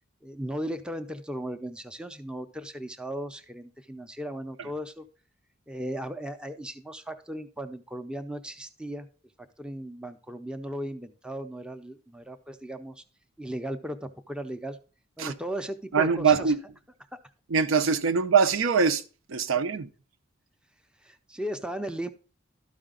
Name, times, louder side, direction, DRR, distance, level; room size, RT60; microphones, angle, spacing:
voice 1, 0.2-5.1 5.7-9.1 9.4-13.0 13.4-14.8 15.2-16.5 17.1-17.2 21.0-22.1, right 1 dB, 5° right, 0.5 m, -36 dB
voice 2, 15.9-16.6 17.5-19.0 19.3-19.9, right 6 dB, 80° right, 0.6 m, -23 dB
12.5 x 4.9 x 3.7 m
head